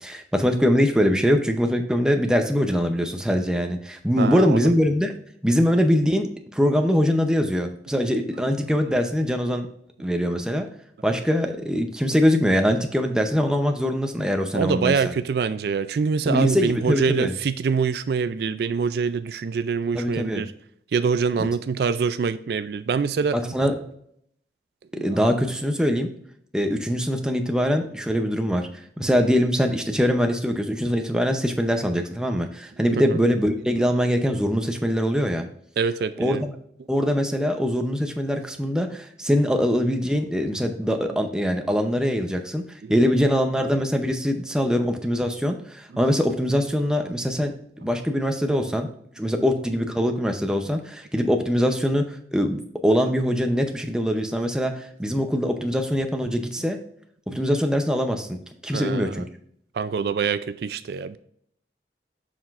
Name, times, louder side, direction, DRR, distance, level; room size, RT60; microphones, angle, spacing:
voice 1, 0.0-5.1 5.4-9.7 10.0-10.7 11.0-15.1 16.3-17.3 19.9-20.4 23.5-23.8 25.0-26.1 26.5-28.7 29.0-35.5 36.2-36.5 36.9-47.5 47.8-48.9 49.2-56.8 57.3-58.4 58.6-59.2, equal, 5° right, 4 dB, 0.6 m, -23 dB
voice 2, 4.2-4.7 8.4-8.9 12.1-12.2 14.5-20.5 20.9-23.6 24.9-25.3 29.0-29.1 32.8-33.2 35.8-36.4 42.0-42.1 42.8-43.0 49.4-49.5 55.1-55.3 56.6-56.7 57.3-57.5 58.7-59.2 59.7-61.2, right 5 dB, 60° right, 13 dB, 0.3 m, -25 dB
7.1 x 5.8 x 2.5 m, 0.68 s
head